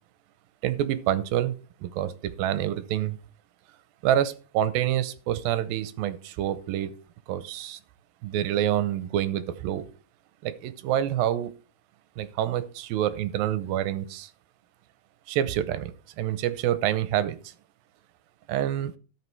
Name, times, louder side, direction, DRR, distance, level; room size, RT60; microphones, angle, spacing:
voice 1, 0.6-1.5 1.8-2.1 2.4-3.2 4.0-6.9 7.3-7.8 8.2-9.8 10.4-11.5 12.2-14.3 15.3-17.5 18.5-18.9, right 11 dB, 80° right, 14 dB, 2.5 m, -27 dB
13.0 x 5.8 x 4.5 m, 0.36 s
omnidirectional pair, 4.2 m